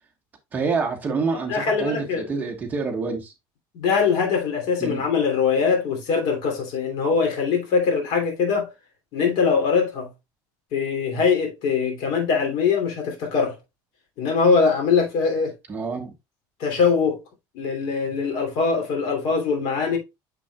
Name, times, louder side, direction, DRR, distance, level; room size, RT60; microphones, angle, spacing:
voice 1, 0.5-3.3 4.8-5.0 15.7-16.1, right 4 dB, 20° right, 1.3 m, -27 dB
voice 2, 1.5-2.3 3.7-8.7 9.1-10.1 10.7-13.6 14.2-15.5 16.6-17.2 17.5-20.0, left 5 dB, 60° left, 2.9 m, -22 dB
7.0 x 5.9 x 2.3 m
cardioid pair, 170°, 8 cm